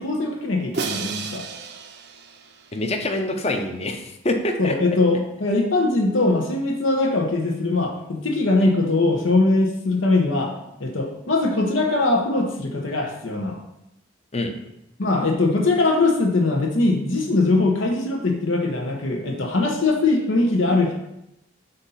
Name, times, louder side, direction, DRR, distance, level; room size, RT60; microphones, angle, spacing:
voice 1, 0.0-1.5 4.6-10.5 10.8-13.6 15.0-20.9, left 2 dB, 90° left, 1 dB, 0.9 m, -21 dB
Crash cymbal, 0.7-3.0, right 5 dB, 60° right, 0.5 m, -32 dB
voice 2, 2.7-4.7 14.3-14.5, left 1 dB, 35° left, 4 dB, 0.7 m, -25 dB
7.8 x 2.7 x 5.6 m, 0.87 s
head